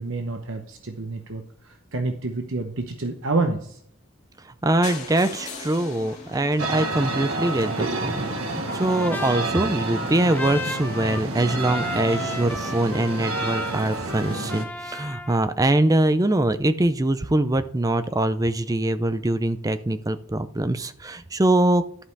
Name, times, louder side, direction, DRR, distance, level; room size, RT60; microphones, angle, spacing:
voice 1, 0.0-3.8, right 3 dB, 60° right, 5 dB, 0.9 m, -28 dB
voice 2, 4.6-21.8, right 1 dB, 15° right, 12 dB, 0.5 m, -23 dB
sound 1, 4.8-8.7 9.4-9.5 9.7-9.8 10.1-10.2 10.4-10.5, left 3 dB, 35° left, 2.5 m, -40 dB
sound 2, 6.6-14.6, right 2 dB, 80° right, 1.5 m, -29 dB
Trumpet, 8.7-15.4, left 2 dB, 10° left, 0.8 m, -35 dB
11.5 x 5.4 x 4.6 m, 0.64 s
head